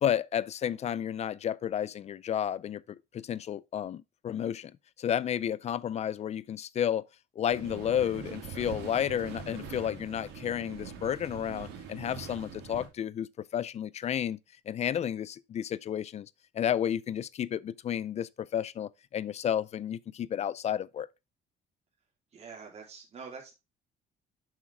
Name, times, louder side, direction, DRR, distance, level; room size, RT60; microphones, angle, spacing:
voice 1, 0.0-2.8 3.1-4.7 5.0-7.1 7.4-13.3 13.5-14.4 14.7-16.3 16.5-21.1, left 9 dB, 40° left, 0.4 m, -31 dB
sound 1, 7.5-12.9, right 6 dB, 80° right, 2.4 m, -43 dB
voice 2, 22.3-23.5, right 5 dB, 40° right, 3.4 m, -45 dB
7.4 x 6.0 x 3.5 m
cardioid pair, 110°, 17 cm